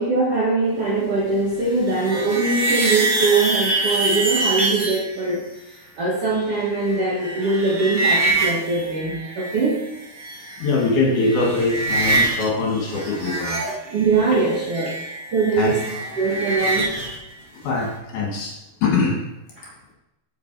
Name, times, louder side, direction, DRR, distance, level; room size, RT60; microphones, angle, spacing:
voice 1, 0.0-5.4 6.0-9.8 13.9-15.0 15.3-15.8 16.2-17.0, right 3 dB, 85° right, -4 dB, 1.3 m, -22 dB
sound 1, 1.6-5.0 6.4-9.8 10.0-10.9 11.1-12.5 12.7-17.2, right 2 dB, 65° right, 1.0 m, -25 dB
voice 2, 10.6-13.6 14.3-14.4 15.6-15.7 17.6-18.6 18.8-19.2, left 3 dB, 60° left, -2 dB, 2.6 m, -22 dB
7.9 x 7.3 x 4.6 m, 0.94 s
omnidirectional pair, 5.0 m